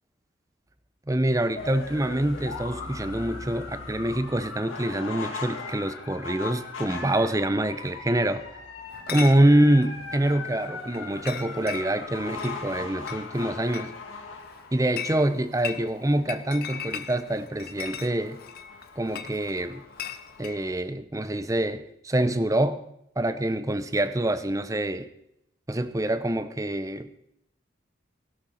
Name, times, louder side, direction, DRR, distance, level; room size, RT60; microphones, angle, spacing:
voice 1, 1.1-8.4 9.1-13.9 14.7-18.4 19.0-19.8 20.4-22.8 23.2-25.1 25.7-27.1, right 1 dB, 15° right, 12 dB, 0.6 m, -25 dB
sound 1, 1.5-20.7, left 4 dB, 85° left, 2.2 m, -40 dB
Chatter / Chink clink, 8.9-20.6, left 8 dB, 50° left, 0.7 m, -40 dB
17.0 x 11.5 x 4.3 m, 0.80 s
head